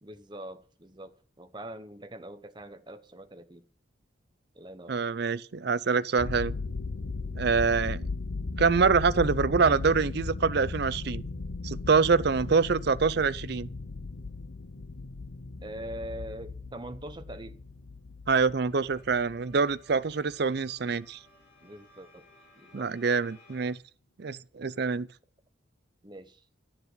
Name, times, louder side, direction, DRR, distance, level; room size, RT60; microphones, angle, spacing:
voice 1, 0.0-3.6 4.5-5.0 15.6-17.6 21.6-22.3 22.6-22.9 26.0-26.4, right 1 dB, 25° right, 0.9 m, -43 dB
voice 2, 4.9-6.5 7.4-8.0 8.6-11.2 11.6-13.7 18.3-21.2 22.7-23.8 24.2-25.1, right 5 dB, 55° right, 0.5 m, -25 dB
sound 1, 6.2-20.3, left 3 dB, 65° left, 0.8 m, -37 dB
sound 2, 18.6-23.7, left 1 dB, 35° left, 4.5 m, -59 dB
11.5 x 7.4 x 8.1 m
head